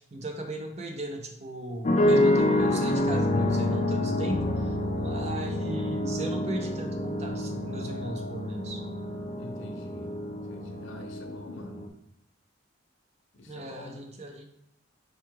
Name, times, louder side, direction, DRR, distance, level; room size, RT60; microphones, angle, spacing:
voice 1, 0.0-8.8 13.5-14.5, right 1 dB, 35° right, 4 dB, 0.5 m, -37 dB
sound 1, 1.8-11.9, left 1 dB, 35° left, 0.4 m, -27 dB
voice 2, 9.4-11.8 13.3-14.0, left 1 dB, 80° left, 2 dB, 0.7 m, -46 dB
4.6 x 2.3 x 4.6 m, 0.72 s
head